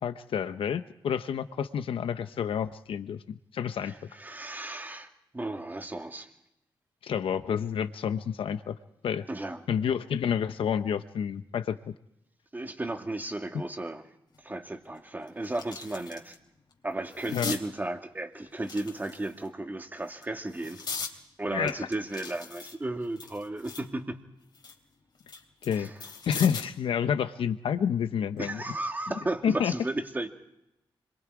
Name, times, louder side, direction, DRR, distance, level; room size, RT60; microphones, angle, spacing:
voice 1, 0.0-3.9 7.0-8.8 9.0-9.2 9.7-11.8 17.3-17.5 21.5-21.8 25.6-25.9 26.3-28.6 29.4-29.7, left 8 dB, 85° left, 10 dB, 0.9 m, -29 dB
voice 2, 4.1-6.3 9.3-9.6 12.5-14.1 14.4-16.4 16.8-21.0 21.4-24.2 25.7-26.0 28.4-30.3, right 2 dB, 20° right, 4 dB, 2.4 m, -34 dB
sound 1, 14.3-14.4 14.9-16.4 16.7-17.6 18.6-19.5 20.1-21.2 21.7-23.9 24.3-26.8 28.2-28.4, left 5 dB, 55° left, 3.3 m, -40 dB
26.0 x 22.5 x 4.8 m, 0.83 s
cardioid pair, 95°, 9 cm